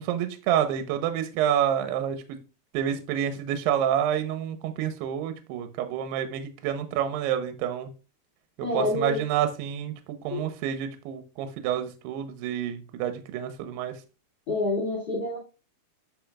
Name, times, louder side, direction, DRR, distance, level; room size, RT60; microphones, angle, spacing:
voice 1, 0.0-2.4 2.7-7.9 8.6-13.9, right 9 dB, 80° right, 2.7 m, -28 dB
voice 2, 8.6-9.2 10.3-10.4 14.5-15.4, left 2 dB, 35° left, 2.4 m, -27 dB
8.5 x 5.5 x 2.3 m
omnidirectional pair, 4.9 m